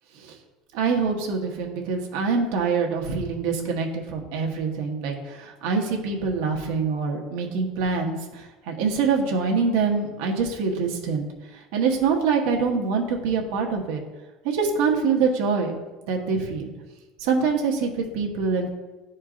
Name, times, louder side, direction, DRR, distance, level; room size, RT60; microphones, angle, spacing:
voice 1, 0.7-11.3 11.5-14.0 14.4-15.7 16.1-16.7 17.2-18.7, right 5 dB, 70° right, 1 dB, 1.1 m, -25 dB
11.0 x 4.4 x 2.5 m, 1.2 s
cardioid pair, 175°, 0 cm